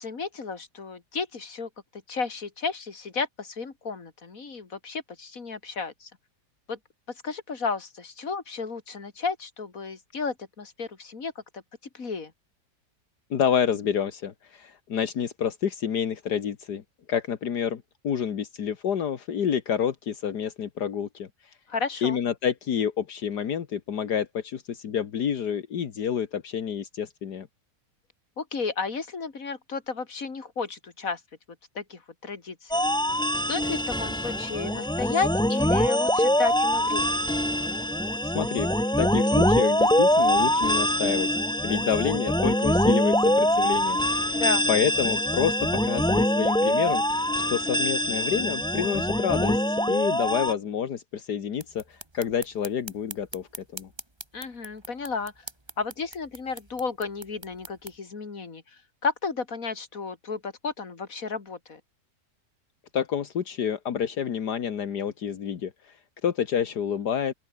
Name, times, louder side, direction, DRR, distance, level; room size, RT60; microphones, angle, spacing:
voice 1, 0.0-6.1 6.7-6.8 7.1-11.6 11.9-12.3 21.7-22.2 28.4-31.2 31.7-32.8 33.5-37.2 44.3-44.7 54.3-55.4 55.8-61.8, left 4 dB, 55° left, 3.1 m, -33 dB
voice 2, 13.3-16.8 17.1-21.6 22.0-27.5 38.2-38.7 39.0-41.3 41.6-44.4 44.7-53.9 62.9-67.3, left 8 dB, 75° left, 2.0 m, -28 dB
sound 1, 32.7-50.5, equal, 5° left, 1.0 m, -24 dB
sound 2, 51.5-58.0, right 1 dB, 15° right, 2.7 m, -44 dB
open air
omnidirectional pair, 1.8 m